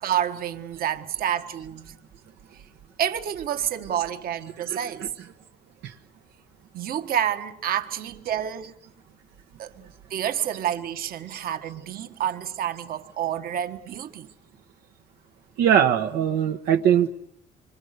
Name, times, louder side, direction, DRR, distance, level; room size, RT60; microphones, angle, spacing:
voice 1, 0.0-2.0 2.5-2.6 3.0-5.1 6.7-8.7 9.6-9.7 10.1-14.3, right 10 dB, 60° right, 1.6 m, -29 dB
voice 2, 4.7-5.1 15.6-17.1, right 9 dB, 85° right, 1.4 m, -21 dB
26.5 x 25.0 x 6.8 m
cardioid pair, 110°, 17 cm